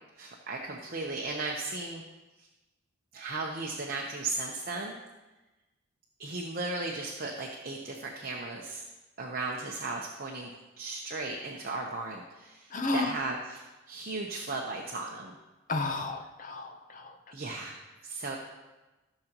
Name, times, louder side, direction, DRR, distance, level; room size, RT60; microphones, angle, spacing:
voice 1, 0.2-2.0 3.1-5.0 6.2-8.8 9.2-10.5 10.8-15.4 17.3-18.4, right 3 dB, 40° right, -1 dB, 0.9 m, -36 dB
voice 2, 12.7-13.1 15.7-17.2, left 3 dB, 35° left, 5 dB, 0.8 m, -32 dB
15.5 x 6.6 x 3.0 m, 1.1 s
head